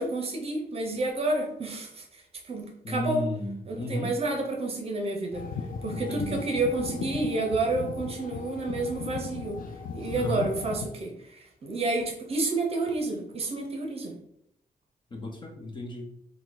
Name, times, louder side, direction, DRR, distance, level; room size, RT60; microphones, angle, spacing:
voice 1, 0.0-2.2 2.5-3.3 3.7-5.4 5.8-9.6 9.9-11.1 11.6-14.1, right 2 dB, 40° right, 2 dB, 0.7 m, -29 dB
voice 2, 2.8-4.1 5.9-6.4 10.1-10.5 15.1-16.1, equal, 30° left, 2 dB, 0.7 m, -34 dB
sound 1, 5.3-10.9, left 6 dB, 70° left, 0.4 m, -37 dB
4.7 x 2.2 x 3.8 m, 0.74 s
wide cardioid pair, 170°, 15 cm